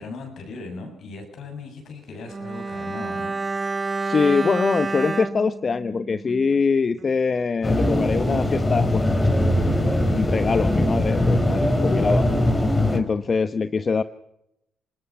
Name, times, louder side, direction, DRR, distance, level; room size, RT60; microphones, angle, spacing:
voice 1, 0.0-3.3, left 3 dB, 70° left, 5 dB, 7.6 m, -37 dB
Bowed string instrument, 2.3-6.7 7.0-7.1, right 3 dB, 25° right, 1.0 m, -29 dB
voice 2, 4.0-9.1 9.8-12.3 12.9-14.0, left 5 dB, 40° left, 12 dB, 0.9 m, -23 dB
sound 1, 7.6-13.0, left 1 dB, 20° left, 4.4 m, -21 dB
29.0 x 20.0 x 5.9 m, 0.80 s
cardioid pair, 90°, 0 cm